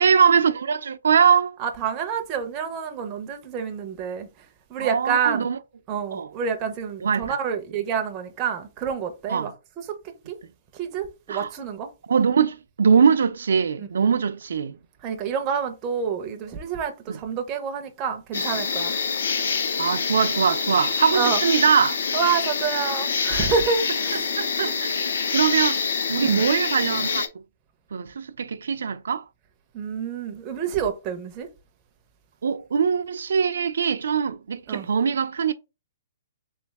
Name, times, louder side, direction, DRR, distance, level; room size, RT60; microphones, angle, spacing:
voice 1, 0.0-1.6 4.8-5.6 6.1-6.3 7.0-7.4 9.3-9.5 11.3-11.5 12.1-14.8 17.1-17.2 19.8-22.0 24.1-25.0 25.3-25.8 26.1-27.2 27.9-29.2 32.4-35.5, right 6 dB, 75° right, 0.4 m, -22 dB
voice 2, 1.6-4.3 4.7-5.5 5.9-9.5 9.8-9.9 10.3-10.4 10.8-11.9 13.8-14.1 15.0-18.9 21.1-21.4 22.1-24.2 24.6-24.8 26.2-26.4 29.7-31.5 34.7-34.9, right 6 dB, 15° right, 0.5 m, -28 dB
sound 1, 18.3-27.3, left 5 dB, 65° left, 0.6 m, -26 dB
3.4 x 3.1 x 3.4 m
hypercardioid pair, 175°, 0 cm